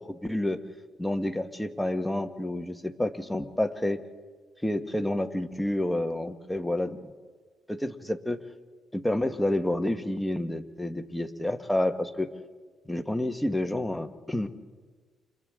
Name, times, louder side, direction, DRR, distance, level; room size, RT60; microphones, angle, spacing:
voice 1, 0.2-0.6 1.0-4.0 4.6-7.0 7.7-8.4 8.9-12.3 12.9-14.5, left 1 dB, 5° left, 7 dB, 1.3 m, -29 dB
29.5 x 27.5 x 3.7 m, 1.5 s
cardioid pair, 90°, 0 cm